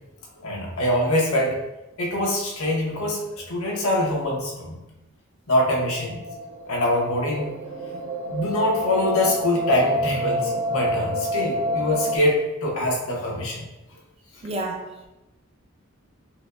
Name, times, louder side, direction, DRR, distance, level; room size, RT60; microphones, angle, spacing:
voice 1, 0.4-1.6 2.0-4.8 5.5-6.2 6.7-7.5 8.3-13.7, left 1 dB, 80° left, -2 dB, 1.1 m, -24 dB
sound 1, 5.9-12.2, equal, 80° right, 0.5 m, -28 dB
voice 2, 14.4-15.1, right 2 dB, 25° right, 1 dB, 0.4 m, -30 dB
5.8 x 2.5 x 2.3 m, 0.96 s
head